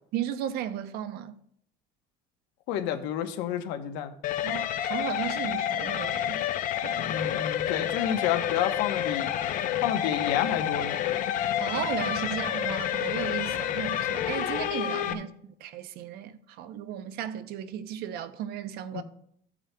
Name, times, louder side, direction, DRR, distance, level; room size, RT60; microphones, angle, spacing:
voice 1, 0.1-1.3 4.4-6.4 6.8-7.0 11.6-19.0, right 10 dB, 60° right, 0.7 m, -35 dB
voice 2, 2.7-4.1 7.1-9.3 9.8-11.2 15.1-15.2 18.9-19.0, left 10 dB, 75° left, 1.0 m, -30 dB
sound 1, 4.2-15.1, left 11 dB, 45° left, 0.6 m, -29 dB
14.5 x 8.5 x 2.2 m
cardioid pair, 145°, 18 cm